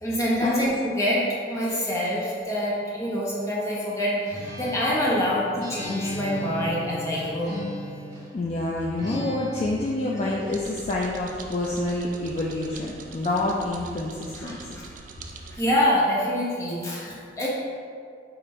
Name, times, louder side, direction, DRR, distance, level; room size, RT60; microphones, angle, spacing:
voice 1, 0.0-7.5 14.4-14.8 15.5-17.5, equal, 15° left, -6 dB, 0.9 m, -26 dB
Acoustic guitar, 4.3-8.4 9.0-10.6, equal, 20° right, 1.2 m, -36 dB
voice 2, 8.3-14.8, left 2 dB, 35° left, -3 dB, 0.3 m, -27 dB
sound 1, 10.4-15.6, right 4 dB, 45° right, 0.4 m, -44 dB
4.8 x 2.5 x 4.2 m, 2.2 s
head